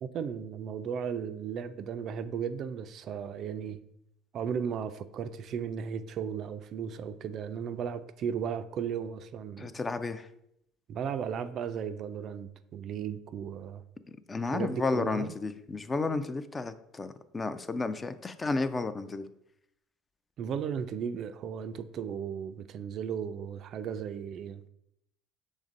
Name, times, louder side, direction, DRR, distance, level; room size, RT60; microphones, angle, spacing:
voice 1, 0.0-3.8 4.3-9.7 10.9-13.8 14.5-15.3 20.4-24.6, right 7 dB, 50° right, 0.3 m, -35 dB
voice 2, 9.6-10.3 14.3-19.2, left 3 dB, 25° left, 0.4 m, -32 dB
6.3 x 3.2 x 2.5 m
hypercardioid pair, 65°, 0 cm